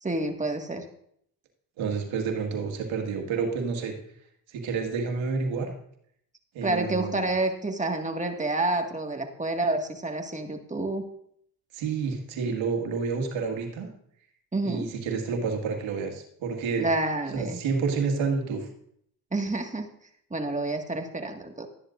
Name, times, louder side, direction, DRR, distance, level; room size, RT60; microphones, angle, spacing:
voice 1, 0.0-0.8 6.6-11.0 14.5-14.9 16.8-17.6 19.3-19.9 20.3-21.7, right 2 dB, 15° right, 3 dB, 1.7 m, -28 dB
voice 2, 1.8-3.9 4.5-5.7 6.5-7.3 11.7-13.9 14.6-16.9 17.3-18.7, right 5 dB, 85° right, 3 dB, 1.8 m, -29 dB
13.0 x 10.5 x 2.5 m, 0.69 s
supercardioid pair, 65°, 46 cm